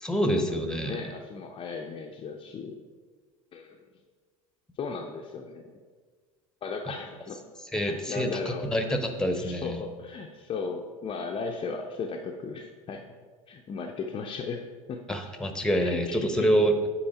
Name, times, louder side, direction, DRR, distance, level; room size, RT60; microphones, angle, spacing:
voice 1, 0.0-1.0 7.7-9.8 15.1-16.9, equal, 5° left, 6 dB, 0.9 m, -26 dB
voice 2, 0.8-2.7 3.5-3.8 4.8-5.8 6.6-7.4 7.8-8.7 9.3-13.0 13.5-14.6 14.9-15.0 15.8-16.5, left 4 dB, 30° left, 2 dB, 0.6 m, -36 dB
8.7 x 4.6 x 4.3 m, 1.5 s
figure-of-eight pair, 75°, 18 cm